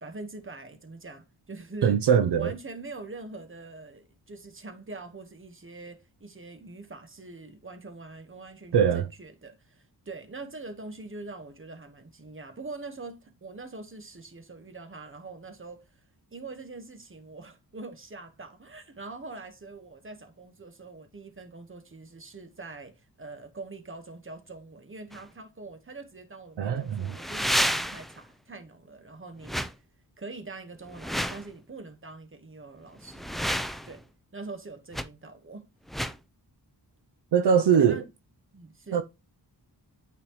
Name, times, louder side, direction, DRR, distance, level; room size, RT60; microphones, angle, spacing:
voice 1, 0.0-2.0 2.3-16.0 16.3-29.8 30.2-33.3 33.8-34.0 34.3-35.7 37.8-38.1 38.5-39.0, right 3 dB, 30° right, 1.3 m, -43 dB
voice 2, 1.8-2.5 8.7-9.1 26.6-27.1 37.3-38.0 38.9-39.0, right 7 dB, 75° right, 0.6 m, -22 dB
sound 1, 25.1-25.2 27.0-28.2 29.4-29.7 30.9-31.4 33.0-34.0 34.9-35.1 35.9-36.2, equal, ahead, 0.4 m, -30 dB
8.7 x 4.3 x 3.0 m
wide cardioid pair, 105°, 41 cm